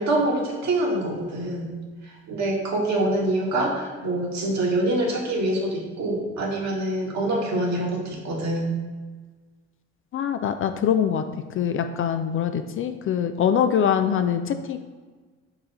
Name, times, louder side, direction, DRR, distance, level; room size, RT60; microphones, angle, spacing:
voice 1, 0.0-1.8 2.3-8.7, right 1 dB, 50° right, -2 dB, 1.8 m, -25 dB
voice 2, 10.1-11.2 11.6-14.8, left 8 dB, 40° left, 8 dB, 0.4 m, -23 dB
4.8 x 3.7 x 5.4 m, 1.4 s
hypercardioid pair, 50°, 34 cm